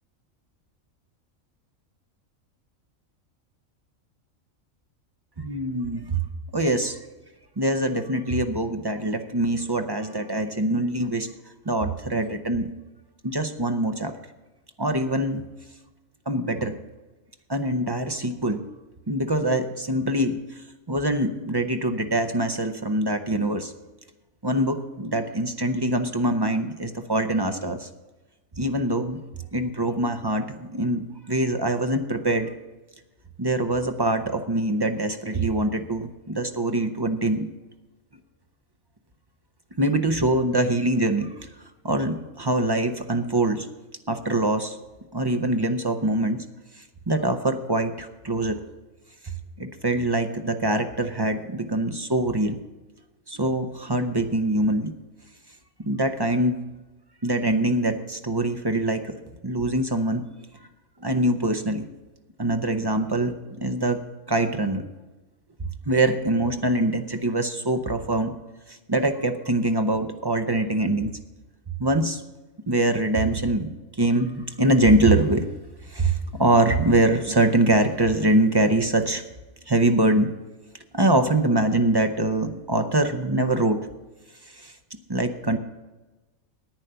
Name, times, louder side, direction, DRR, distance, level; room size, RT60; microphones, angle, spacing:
voice 1, 5.4-6.3 6.5-7.0 7.6-11.3 11.6-12.7 13.2-14.2 14.8-15.5 16.3-16.8 17.5-18.7 19.1-23.7 24.4-27.9 28.6-29.2 29.5-32.5 33.4-37.5 39.8-41.5 41.8-43.7 44.1-44.8 45.1-46.4 46.7-48.6 49.2-52.6 53.3-54.9 55.9-56.6 57.2-60.3 61.0-61.9 62.4-64.0 64.3-64.9 65.6-68.4 68.7-71.2 71.8-72.2 72.7-73.7 74.0-75.5 75.8-79.2 79.7-80.4 80.9-83.9 84.5-85.6, right 1 dB, 30° right, 7 dB, 0.5 m, -24 dB
10.5 x 9.0 x 6.7 m, 1.1 s
omnidirectional pair, 1.4 m